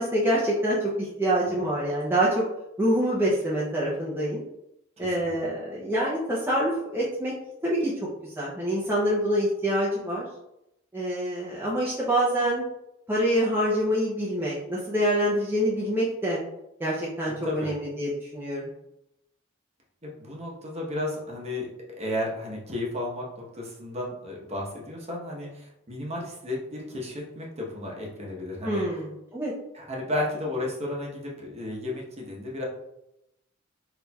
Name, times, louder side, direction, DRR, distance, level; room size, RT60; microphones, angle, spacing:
voice 1, 0.0-2.4 2.8-4.5 5.0-7.3 7.6-10.2 10.9-12.6 13.1-16.4 16.8-18.7 28.6-29.5, right 1 dB, 10° right, -6 dB, 0.6 m, -26 dB
voice 2, 5.0-5.4 17.3-17.7 20.0-21.7 22.0-28.9 29.7-32.6, left 1 dB, 35° right, -2 dB, 1.0 m, -33 dB
4.2 x 3.4 x 2.3 m, 0.84 s
head